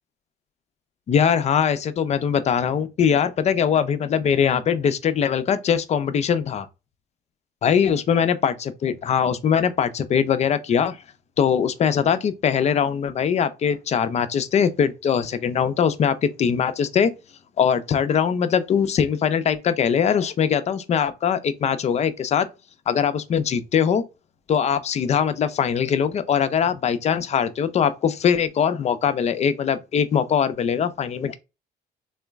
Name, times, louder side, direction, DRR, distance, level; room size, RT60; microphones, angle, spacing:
voice 1, 1.1-6.7 7.6-11.0 11.4-17.1 17.6-22.5 22.9-24.0 24.5-31.4, left 7 dB, 40° left, 0.5 m, -21 dB
3.8 x 2.1 x 3.4 m
cardioid pair, 110°, 17 cm